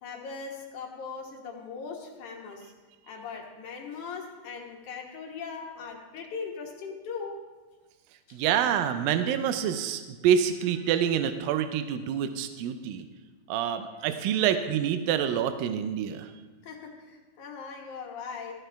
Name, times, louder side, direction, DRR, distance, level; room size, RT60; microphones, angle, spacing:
voice 1, 0.0-2.7 3.1-7.4 8.3-8.4 16.6-18.5, left 5 dB, 65° left, 0 dB, 2.2 m, -39 dB
voice 2, 8.3-13.1 13.5-16.3, right 9 dB, 85° right, 9 dB, 2.0 m, -27 dB
14.0 x 12.5 x 3.4 m, 1.3 s
omnidirectional pair, 4.7 m